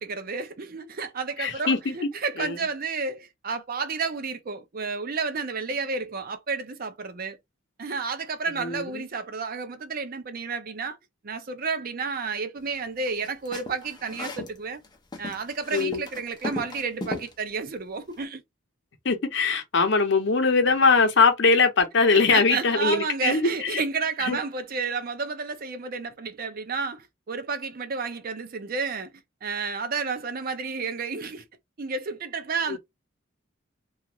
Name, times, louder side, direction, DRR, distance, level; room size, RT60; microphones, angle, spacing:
voice 1, 0.0-7.4 7.8-11.0 11.2-14.8 15.2-18.4 22.1-29.1 29.4-31.4 31.8-32.8, right 4 dB, 45° right, 0.5 m, -31 dB
voice 2, 1.4-1.9 2.4-2.5 8.6-8.7 15.7-16.0 19.0-23.7 24.3-24.4 32.7-32.8, left 4 dB, 60° left, 0.7 m, -21 dB
sound 1, 13.1-14.6 14.8-17.3, left 2 dB, 20° left, 0.6 m, -36 dB
2.5 x 2.4 x 2.9 m
head